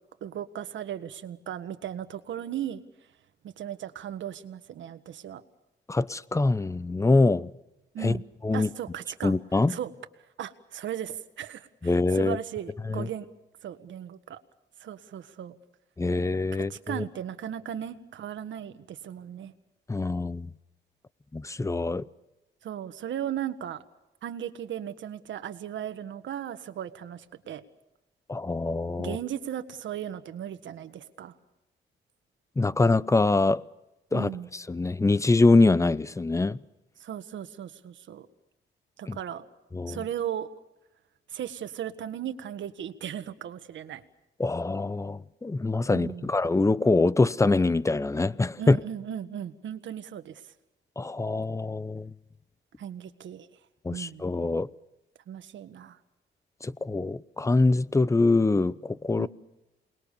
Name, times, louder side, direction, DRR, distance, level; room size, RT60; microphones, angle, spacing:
voice 1, 0.2-2.8 3.4-5.4 7.9-8.2 8.5-9.9 10.4-13.3 13.6-14.4 14.8-15.5 16.5-19.5 22.6-23.8 24.2-27.6 29.0-31.3 34.1-34.5 37.0-38.3 39.0-39.5 39.9-40.5 41.3-44.0 45.9-46.3 48.6-50.4 52.8-53.5 53.9-54.2 55.3-56.0 59.2-59.3, right 10 dB, 75° right, 1.6 m, -36 dB
voice 2, 5.9-7.5 8.0-8.2 8.4-8.7 9.2-9.8 11.8-12.4 12.9-13.1 16.0-17.0 19.9-20.5 21.3-22.0 28.3-29.2 32.6-33.6 34.1-36.6 39.1-39.2 39.7-40.0 44.4-48.8 51.0-52.1 53.8-54.7 56.6-59.3, left 3 dB, 15° left, 0.7 m, -24 dB
28.0 x 21.0 x 6.8 m
cardioid pair, 95°, 19 cm